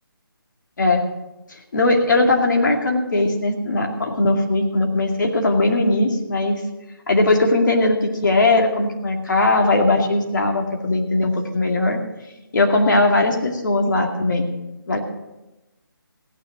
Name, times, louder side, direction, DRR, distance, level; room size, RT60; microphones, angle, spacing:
voice 1, 1.5-6.6 7.1-12.0 12.5-14.5 14.9-15.0, left 2 dB, 55° left, 2 dB, 2.4 m, -19 dB
16.0 x 9.2 x 5.1 m, 0.98 s
figure-of-eight pair, 160°, 12 cm